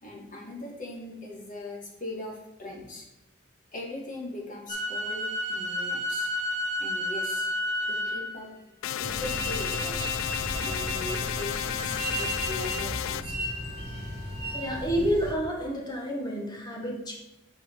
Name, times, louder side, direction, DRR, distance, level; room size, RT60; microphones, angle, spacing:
voice 1, 0.0-3.1 3.7-6.3 6.8-7.5 7.9-8.5 8.9-10.2 10.6-13.5, left 1 dB, 40° left, -2 dB, 1.9 m, -40 dB
sound 1, 4.7-8.5 9.2-14.8, left 1 dB, 25° right, 2.0 m, -33 dB
sound 2, 8.8-13.2, left 11 dB, 80° left, 0.3 m, -32 dB
sound 3, 9.0-15.3, equal, 55° right, 1.7 m, -37 dB
voice 2, 14.5-17.2, equal, 20° left, -1 dB, 1.6 m, -29 dB
8.4 x 5.0 x 4.5 m, 0.95 s
head